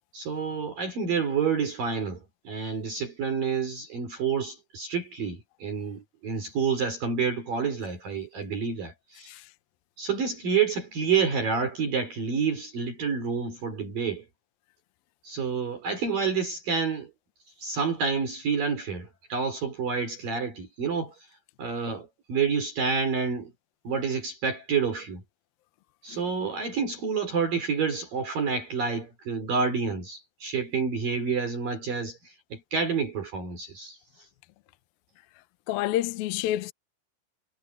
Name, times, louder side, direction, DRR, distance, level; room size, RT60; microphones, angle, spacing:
voice 1, 0.1-9.3 10.0-14.2 15.2-17.1 17.6-21.1 21.6-23.5 23.8-25.2 26.0-34.0, right 5 dB, 50° right, 5.6 m, -29 dB
voice 2, 35.7-36.7, left 14 dB, 80° left, 2.2 m, -28 dB
omnidirectional pair, 5.3 m